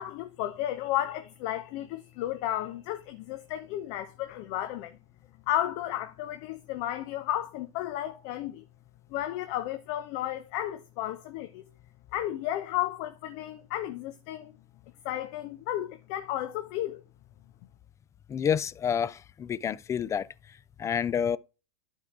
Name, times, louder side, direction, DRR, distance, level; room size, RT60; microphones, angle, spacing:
voice 1, 0.0-5.0 5.5-8.6 9.1-11.7 12.1-14.5 15.0-17.0, left 13 dB, 45° left, 0.9 m, -33 dB
voice 2, 18.3-20.3 20.8-21.4, left 8 dB, 15° left, 0.4 m, -28 dB
11.5 x 4.7 x 3.8 m
hypercardioid pair, 105°, 17 cm